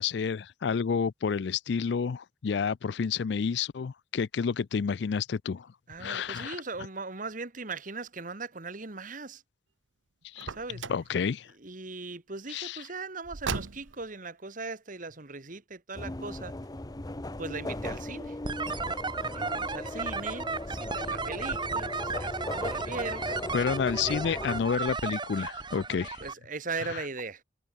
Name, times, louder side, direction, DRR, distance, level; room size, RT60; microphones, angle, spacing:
voice 1, 0.0-5.7 6.0-6.6 10.2-10.5 10.9-11.5 12.5-12.8 23.5-26.2 26.9-27.0, left 6 dB, 60° left, 0.4 m, -30 dB
voice 2, 5.9-9.4 10.5-10.8 11.6-16.5 17.4-18.4 19.3-23.2 24.0-24.2 26.2-27.4, right 3 dB, 45° right, 1.6 m, -39 dB
Car, 10.4-11.1 13.2-14.1, right 4 dB, 85° right, 1.1 m, -36 dB
sound 1, 15.9-24.6, left 1 dB, 20° left, 0.8 m, -37 dB
sound 2, 18.4-26.3, right 4 dB, 25° right, 1.5 m, -34 dB
head